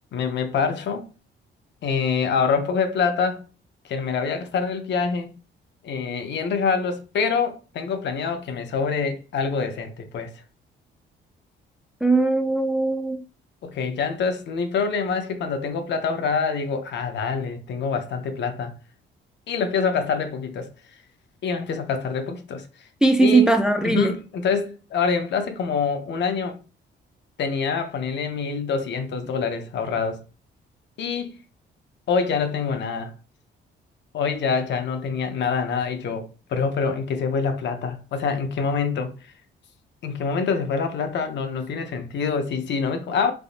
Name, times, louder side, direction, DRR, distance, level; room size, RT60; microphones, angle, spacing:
voice 1, 0.1-1.1 1.8-3.4 3.8-5.3 5.8-10.4 13.6-18.7 19.5-20.7 21.4-22.7 23.2-23.5 23.8-26.6 27.4-30.2 31.0-31.4 32.1-33.1 34.1-39.1 40.0-43.3, left 5 dB, 65° left, 0.6 m, -25 dB
voice 2, 12.0-13.2 23.0-24.1, right 2 dB, 5° right, 0.3 m, -19 dB
3.4 x 2.6 x 2.4 m
cardioid pair, 90°, 20 cm